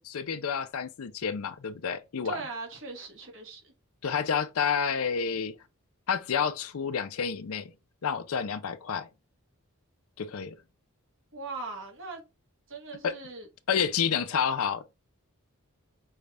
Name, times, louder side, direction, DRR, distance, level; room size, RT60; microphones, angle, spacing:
voice 1, 0.0-2.4 4.0-5.5 6.1-7.7 8.0-9.1 10.2-10.5 13.0-13.2 13.7-14.8, left 7 dB, 70° left, 0.5 m, -29 dB
voice 2, 2.2-3.7 11.3-12.2 12.7-13.5, right 3 dB, 60° right, 1.4 m, -39 dB
5.4 x 2.4 x 3.3 m
head